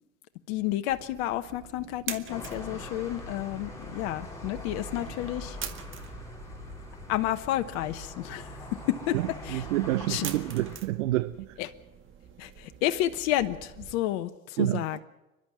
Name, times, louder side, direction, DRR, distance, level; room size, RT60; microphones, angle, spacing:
voice 1, 0.5-5.6 7.1-9.2 9.4-9.7 10.1-10.3 11.6-11.7 12.4-15.0, left 14 dB, 55° left, 1.2 m, -31 dB
sound 1, 0.9-14.0, right 8 dB, 30° right, 1.8 m, -46 dB
sound 2, 2.3-10.8, left 1 dB, 10° left, 5.8 m, -42 dB
voice 2, 9.5-11.5 14.6-15.0, right 17 dB, 65° right, 0.8 m, -28 dB
29.5 x 12.0 x 7.6 m
hypercardioid pair, 90°, 40 cm